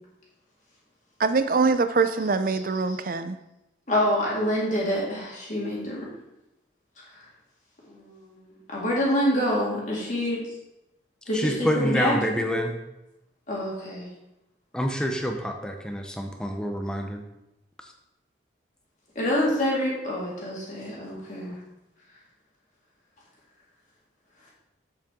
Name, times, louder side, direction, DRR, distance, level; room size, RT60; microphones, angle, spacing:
voice 1, 1.2-3.4, right 4 dB, 45° right, 0.5 m, -23 dB
voice 2, 3.9-6.1 7.1-7.2 7.9-10.4 11.3-12.6 13.5-14.1 19.2-21.6, equal, 40° left, 2.0 m, -27 dB
voice 3, 11.3-12.7 14.7-17.2, equal, 5° left, 0.7 m, -27 dB
7.6 x 7.5 x 3.7 m
head